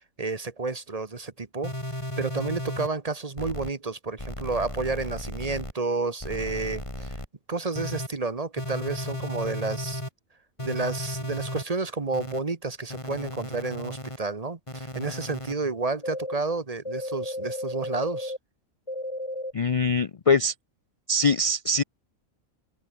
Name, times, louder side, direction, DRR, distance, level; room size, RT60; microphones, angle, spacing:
voice 1, 0.2-1.7 2.2-7.2 7.5-10.0 10.6-18.3, right 3 dB, 30° right, 1.2 m, -30 dB
sound 1, 1.6-2.9 3.4-3.7 4.2-5.7 6.2-7.3 7.7-8.1 8.6-10.1 10.6-11.6 12.1-12.4 12.9-14.2 14.7-15.5 16.0-16.3 16.8-18.4 18.9-19.5, left 1 dB, 20° left, 5.0 m, -34 dB
voice 2, 19.5-20.5 21.1-21.8, left 3 dB, 60° left, 0.3 m, -23 dB
open air
omnidirectional pair, 1.4 m